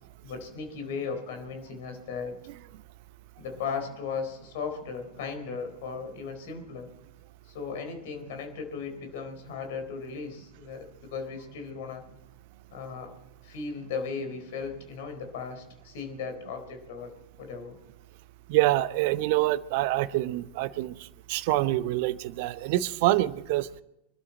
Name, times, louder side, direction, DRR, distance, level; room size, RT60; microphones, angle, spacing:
voice 1, 0.2-2.4 3.4-6.9 7.4-12.0 12.7-13.1 13.4-17.7, left 5 dB, 55° left, 6 dB, 4.0 m, -37 dB
voice 2, 18.5-23.7, right 16 dB, 50° right, 16 dB, 0.8 m, -26 dB
25.0 x 12.5 x 4.4 m, 0.88 s
figure-of-eight pair, 90°, 0 cm